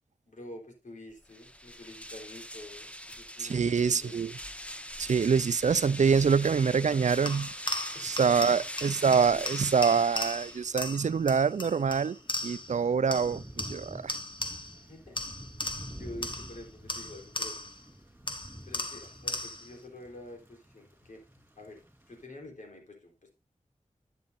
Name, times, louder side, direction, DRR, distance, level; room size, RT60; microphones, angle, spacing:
voice 1, 0.3-4.2 7.9-8.1 8.4-9.6 14.8-17.6 18.6-21.2 21.6-23.3, left 1 dB, 75° left, 3.7 m, -48 dB
sound 1, 1.2-10.9, equal, 10° left, 1.0 m, -42 dB
voice 2, 3.4-4.3 5.0-7.5 8.0-12.2 12.4-13.4 13.7-14.2, right 6 dB, 65° right, 0.5 m, -25 dB
Thunder / Rain, 6.6-22.2, right 1 dB, 15° right, 3.6 m, -51 dB
sound 2, 7.2-12.8 13.1-14.8 15.2-17.8 18.3-19.8, left 2 dB, 40° left, 1.5 m, -37 dB
11.5 x 9.2 x 2.6 m
cardioid pair, 45°, 13 cm